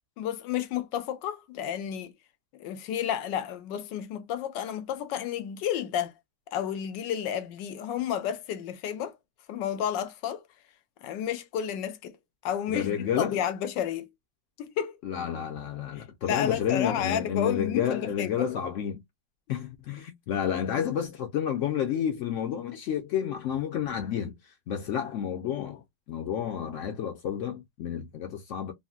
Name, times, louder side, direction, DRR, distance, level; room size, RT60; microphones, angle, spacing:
voice 1, 0.2-2.1 2.5-6.1 6.5-9.1 9.5-10.4 11.0-12.2 12.4-14.1 14.6-15.0 15.9-18.5, left 9 dB, 90° left, 1.3 m, -31 dB
voice 2, 12.7-13.4 15.0-19.0 19.5-25.8 26.1-28.7, left 9 dB, 70° left, 0.7 m, -30 dB
3.8 x 2.0 x 2.4 m
omnidirectional pair, 1.9 m